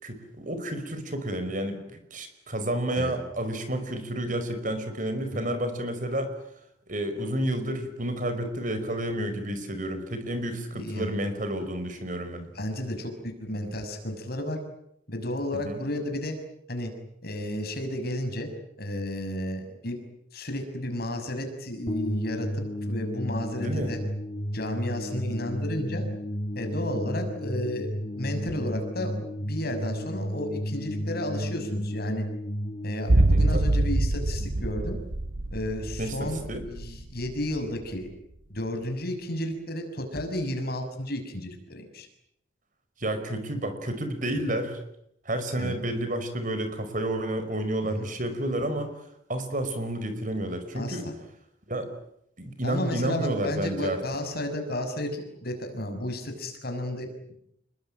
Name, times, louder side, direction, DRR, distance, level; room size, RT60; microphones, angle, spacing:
voice 1, 0.0-6.3 6.9-12.4 15.6-15.8 23.5-23.9 33.1-33.6 36.0-36.6 43.0-44.8 45.2-48.9 49.3-51.0 51.7-51.9 52.4-54.0, right 1 dB, 45° right, 9 dB, 5.1 m, -30 dB
voice 2, 10.7-11.1 12.5-14.6 15.1-16.4 16.7-16.9 17.2-18.5 18.8-20.0 20.3-24.0 24.5-26.1 26.5-32.3 32.8-35.0 35.5-38.1 38.5-42.1 44.5-44.6 45.6-45.8 47.8-48.1 50.7-51.1 52.6-57.4, left 1 dB, 55° left, 6 dB, 6.2 m, -32 dB
sound 1, 21.9-35.0, equal, 30° left, 1.4 m, -33 dB
sound 2, 33.1-37.3 37.6-37.7, right 2 dB, 75° right, 1.1 m, -24 dB
28.5 x 22.0 x 9.1 m, 0.76 s
head